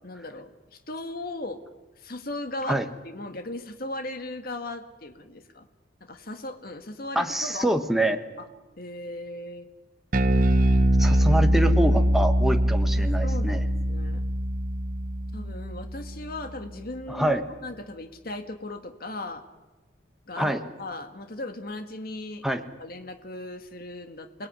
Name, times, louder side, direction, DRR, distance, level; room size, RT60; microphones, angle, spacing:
voice 1, 0.0-1.6 2.0-5.7 6.0-8.0 8.4-8.5 8.8-9.7 11.1-11.3 13.0-14.2 15.3-19.4 20.3-20.5 20.8-22.4 22.8-24.5, left 2 dB, 55° left, 7 dB, 1.8 m, -37 dB
voice 2, 7.1-8.2 11.0-13.6 17.1-17.4 20.4-20.6 22.4-22.6, right 1 dB, ahead, 5 dB, 1.3 m, -25 dB
Bass guitar, 10.1-16.6, equal, 45° right, 1.0 m, -23 dB
28.5 x 19.5 x 9.7 m, 1.1 s
head